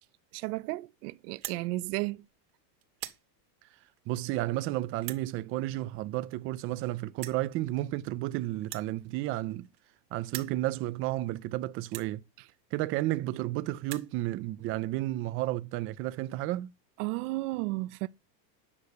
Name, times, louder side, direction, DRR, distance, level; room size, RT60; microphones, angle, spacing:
voice 1, 0.3-2.2 17.0-18.1, right 21 dB, 65° right, 0.7 m, -33 dB
sound 1, 1.3-1.6 2.3-2.5 2.8-3.2 4.0-4.1 5.0-5.3 6.3-6.4 6.6-6.7 7.2-7.4 8.6-9.9 10.2-10.6 11.3-11.4 11.9-12.1 13.0-13.1 13.4-13.5 13.7-14.1, right 15 dB, 90° right, 2.2 m, -42 dB
voice 2, 4.1-9.7 10.1-12.2 12.7-16.7, right 16 dB, 30° right, 0.4 m, -32 dB
9.7 x 4.8 x 6.5 m
supercardioid pair, 150°, 49 cm